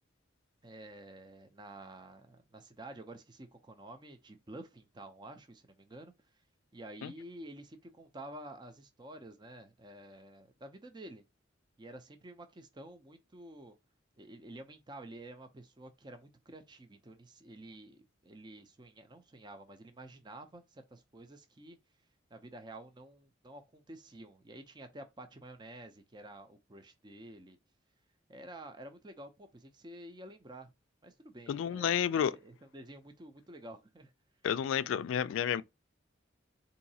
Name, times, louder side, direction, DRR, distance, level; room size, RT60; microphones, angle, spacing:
voice 1, 0.6-6.4 6.7-11.2 11.8-13.8 14.2-21.8 22.3-27.6 28.3-30.7 31.0-34.1, right 1 dB, 25° right, 0.5 m, -50 dB
voice 2, 31.5-32.4 34.4-35.6, left 8 dB, 90° left, 0.3 m, -30 dB
3.9 x 2.7 x 2.7 m
head